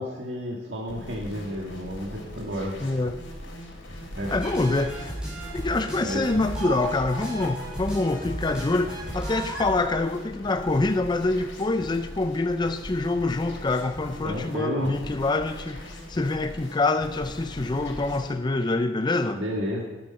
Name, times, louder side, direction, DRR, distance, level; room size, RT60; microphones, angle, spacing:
voice 1, 0.0-2.8 4.1-4.3 5.9-6.2 14.2-14.9 19.3-19.8, equal, 65° right, -3 dB, 1.9 m, -31 dB
sound 1, 0.9-18.3, equal, 70° left, 3.6 m, -41 dB
voice 2, 2.8-3.2 4.3-5.2 5.5-19.4, left 2 dB, 25° left, 8 dB, 0.4 m, -26 dB
sound 2, 4.2-9.7, right 1 dB, 5° right, 4.8 m, -35 dB
12.0 x 9.7 x 5.6 m, 1.1 s
head